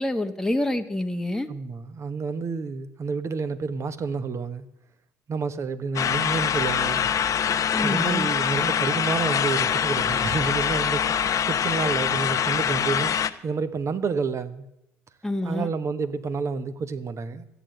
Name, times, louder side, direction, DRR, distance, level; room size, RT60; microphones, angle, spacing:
voice 1, 0.0-1.5 7.7-8.3 15.2-15.7, left 1 dB, 5° left, 5 dB, 1.1 m, -27 dB
voice 2, 1.5-4.6 5.3-7.1 7.8-13.1 13.4-14.6 15.4-17.5, right 5 dB, 40° right, 10 dB, 1.3 m, -29 dB
sound 1, 6.0-13.3, left 8 dB, 45° left, 0.8 m, -24 dB
14.0 x 9.1 x 7.8 m, 0.84 s
hypercardioid pair, 60°, 8 cm